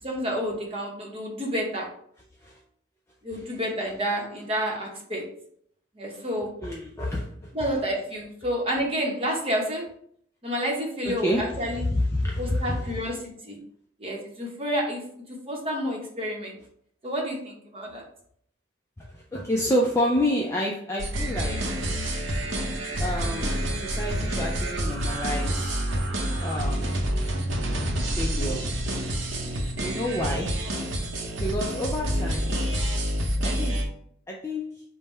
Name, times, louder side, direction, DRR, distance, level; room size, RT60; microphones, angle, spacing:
voice 1, 0.0-1.9 3.2-5.3 6.0-6.6 7.5-9.9 10.4-11.8 12.4-13.6 14.0-15.0 15.5-16.6 17.0-18.1 29.4-29.6, equal, 30° right, 0 dB, 0.9 m, -29 dB
voice 2, 6.6-7.5 11.0-13.1 19.0-21.7 23.0-25.8 26.4-27.0 28.2-28.9 29.8-30.7 31.4-32.6 33.4-33.9 34.3-34.8, left 1 dB, 15° left, -2 dB, 0.4 m, -29 dB
sound 1, 21.0-33.9, equal, 70° right, 0.8 m, -28 dB
5.3 x 2.2 x 4.3 m, 0.66 s
head